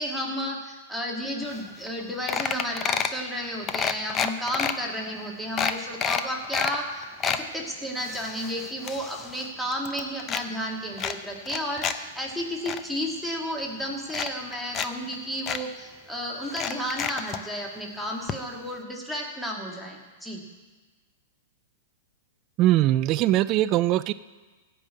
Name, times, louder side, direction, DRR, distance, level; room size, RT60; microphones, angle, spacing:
voice 1, 0.0-20.4, equal, ahead, -2 dB, 2.2 m, -32 dB
sound 1, 1.6-1.7 1.9-2.0 2.3-3.2 3.7-4.7 5.2-5.3 5.6-6.8 7.0-7.4 8.0-9.5 9.7-10.4 11.0-12.0 12.3-12.8 13.6-13.7 14.1-14.9 15.1-15.2 15.5-15.6 16.5-17.4 18.3-18.4 18.7-18.8, left 8 dB, 25° left, 0.7 m, -29 dB
voice 2, 22.6-24.1, right 14 dB, 40° right, 15 dB, 0.4 m, -21 dB
16.0 x 5.4 x 8.4 m, 1.3 s
hypercardioid pair, 125°, 0 cm